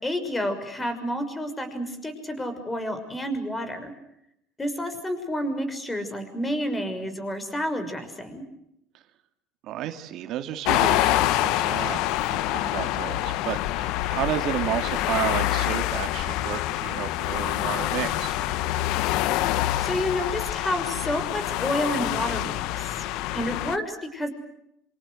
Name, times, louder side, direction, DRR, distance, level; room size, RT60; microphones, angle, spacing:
voice 1, 0.0-3.9 4.6-8.4 19.8-23.0 23.3-24.3, equal, 15° left, 10 dB, 6.0 m, -30 dB
voice 2, 9.6-18.4, right 12 dB, 55° right, 7 dB, 2.4 m, -32 dB
sound 1, 10.7-23.8, left 14 dB, 65° left, 1.2 m, -26 dB
27.0 x 26.0 x 6.5 m, 0.79 s
supercardioid pair, 105°, 0 cm